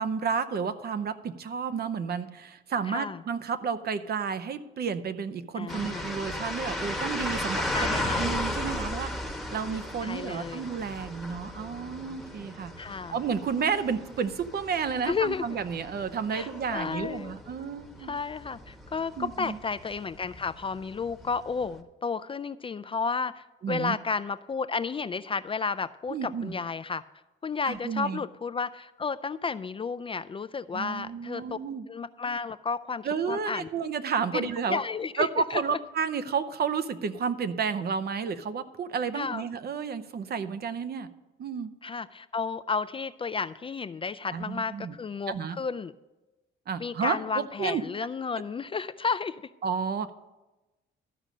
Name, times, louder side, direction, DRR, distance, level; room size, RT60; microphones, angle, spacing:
voice 1, 0.0-12.7 13.1-18.1 19.2-19.6 23.6-24.0 26.1-26.5 27.6-28.2 30.7-31.9 33.0-34.8 35.2-41.1 41.4-41.7 44.3-45.0 45.3-45.6 46.7-47.8 49.6-50.1, right 6 dB, 50° right, 12 dB, 0.7 m, -31 dB
voice 2, 2.9-3.2 5.6-6.1 7.7-8.3 10.0-10.7 12.8-13.2 15.1-15.4 16.3-17.4 18.0-27.0 27.4-31.6 31.9-33.7 34.3-35.6 39.1-39.4 41.8-45.9 46.8-49.4, left 5 dB, 25° left, 14 dB, 0.3 m, -32 dB
sound 1, 5.7-21.8, left 1 dB, ahead, 1.1 m, -36 dB
13.0 x 5.0 x 6.6 m, 1.1 s
cardioid pair, 90°, 20 cm